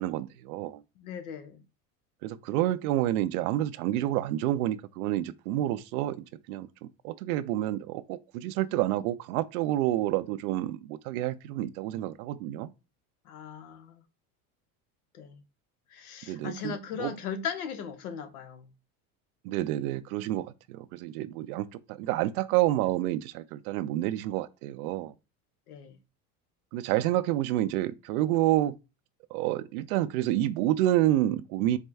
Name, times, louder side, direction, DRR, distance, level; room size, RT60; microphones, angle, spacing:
voice 1, 0.0-0.8 2.2-12.7 16.3-17.2 19.4-25.1 26.7-28.8 29.3-31.8, right 14 dB, 80° right, 0.5 m, -29 dB
voice 2, 1.0-1.6 13.2-14.0 15.1-15.4 15.9-18.7 25.7-26.0, left 7 dB, 85° left, 0.9 m, -38 dB
4.4 x 2.2 x 3.4 m
supercardioid pair, 100°, 43 cm